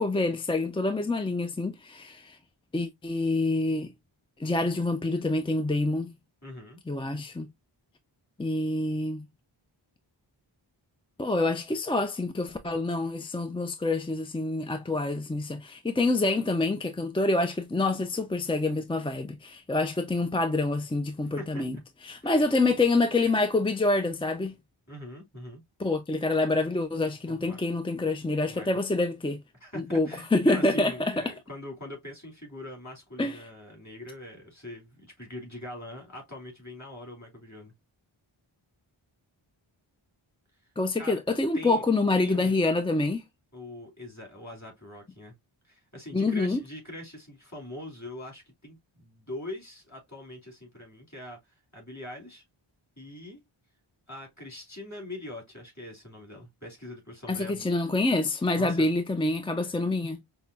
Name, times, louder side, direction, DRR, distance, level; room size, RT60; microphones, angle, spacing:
voice 1, 0.0-2.4 2.7-3.9 4.4-6.1 6.9-7.5 8.4-9.3 11.2-21.8 22.0-24.5 25.8-29.4 29.9-31.2 33.2-33.4 40.8-43.2 46.1-46.6 57.3-60.2, left 2 dB, 10° left, 0.3 m, -27 dB
voice 2, 6.4-6.8 21.2-21.6 22.2-22.5 24.9-25.6 27.3-27.6 28.4-28.8 29.6-37.7 41.0-41.2 41.5-41.8 42.1-42.6 43.5-45.3 45.7-51.4 51.7-52.4 53.0-53.4 54.1-57.7 58.5-58.9 59.4-59.8, left 1 dB, 35° left, 2.6 m, -42 dB
5.4 x 2.2 x 2.3 m
wide cardioid pair, 50°, 49 cm